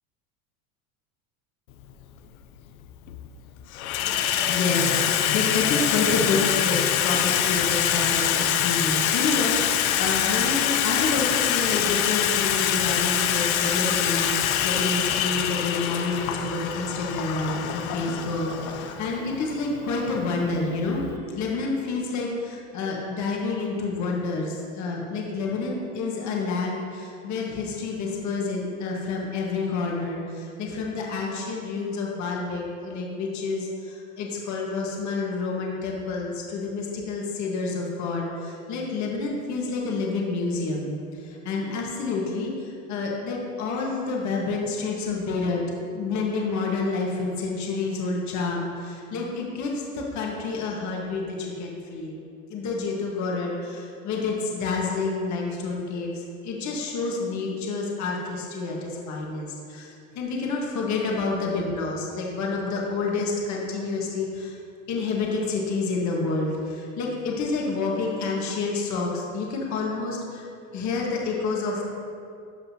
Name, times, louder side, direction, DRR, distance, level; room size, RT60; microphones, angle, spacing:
Water tap faucet / Sink (filling or washing), 1.8-1.9 2.9-3.3 3.6-21.2, left 10 dB, 80° left, 0.7 m, -25 dB
voice 1, 4.2-21.0 21.3-41.0 41.2-42.5 42.9-45.6 45.9-52.2 52.5-56.1 56.4-59.9 60.1-64.5 64.9-70.4 70.7-71.8, left 3 dB, 40° left, -2 dB, 1.5 m, -28 dB
12.5 x 5.4 x 2.8 m, 2.4 s
supercardioid pair, 115°, 42 cm